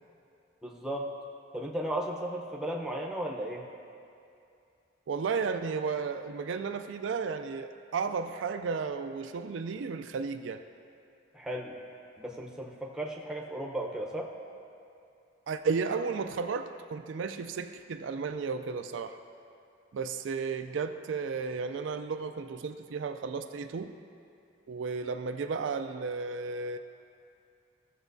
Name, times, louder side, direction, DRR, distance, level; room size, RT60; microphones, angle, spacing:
voice 1, 0.6-1.1 1.5-3.6 11.3-11.7 12.2-14.3, right 1 dB, 5° right, -2 dB, 0.8 m, -35 dB
voice 2, 5.1-10.6 15.5-19.2 19.9-23.9 24.7-26.8, right 5 dB, 70° right, 7 dB, 0.4 m, -33 dB
16.0 x 7.1 x 2.7 m, 2.5 s
head